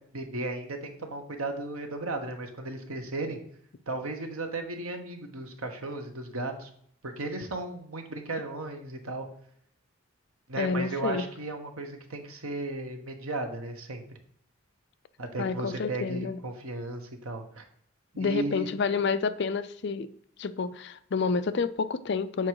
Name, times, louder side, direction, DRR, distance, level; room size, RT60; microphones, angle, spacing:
voice 1, 0.1-3.4 3.9-6.7 7.0-9.3 10.5-14.0 15.2-17.6 18.2-18.7, right 2 dB, 85° right, 1.2 m, -35 dB
voice 2, 10.6-11.2 15.4-16.4 18.2-20.1 20.4-22.5, left 4 dB, 55° left, 0.4 m, -29 dB
7.3 x 4.7 x 4.8 m
head